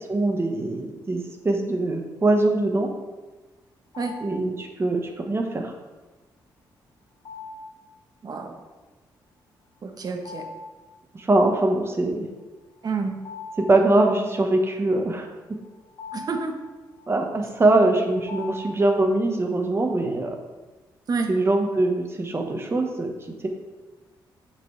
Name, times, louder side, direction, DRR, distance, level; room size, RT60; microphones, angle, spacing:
voice 1, 0.1-2.9 4.2-5.7 11.1-12.3 13.6-15.3 17.1-20.4 21.3-23.1, right 2 dB, 30° right, 3 dB, 1.2 m, -22 dB
sound 1, 3.9-4.6 7.2-7.9 10.1-10.9 11.2-11.3 12.8-14.3 15.3-19.2, left 4 dB, 75° left, 1.9 m, -41 dB
voice 2, 8.2-8.6 9.8-10.5 12.8-13.2 16.1-16.6 21.1-21.3, right 4 dB, 50° right, 5 dB, 1.1 m, -29 dB
7.8 x 5.9 x 3.3 m, 1.2 s
cardioid pair, 75°, 9 cm